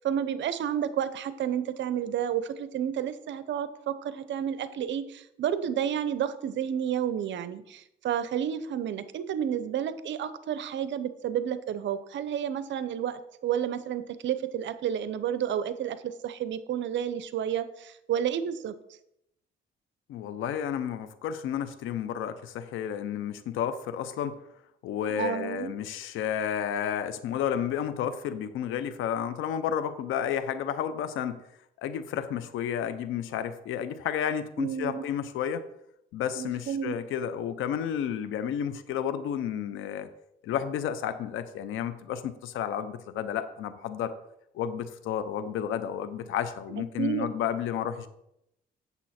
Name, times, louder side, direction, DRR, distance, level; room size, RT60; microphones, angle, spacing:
voice 1, 0.0-18.7 25.2-25.7 34.6-35.0 36.4-36.9 47.0-47.3, right 9 dB, 70° right, 13 dB, 0.7 m, -31 dB
voice 2, 20.1-24.4 24.8-31.4 31.8-35.6 36.1-40.1 40.4-44.1 44.5-48.1, left 9 dB, 85° left, 11 dB, 0.7 m, -31 dB
8.2 x 7.1 x 4.3 m, 0.80 s
cardioid pair, 90°, 20 cm